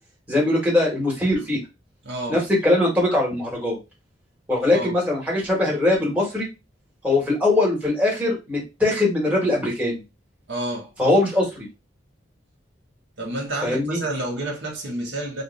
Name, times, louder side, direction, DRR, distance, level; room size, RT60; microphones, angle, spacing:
voice 1, 0.3-1.6 2.3-3.8 4.5-6.5 7.0-10.0 11.0-11.7 13.6-14.0, left 2 dB, 10° right, 1.4 m, -21 dB
voice 2, 2.0-2.4 4.7-5.0 10.5-10.9 13.2-15.4, right 2 dB, 80° right, 1.3 m, -29 dB
3.3 x 2.4 x 3.2 m
head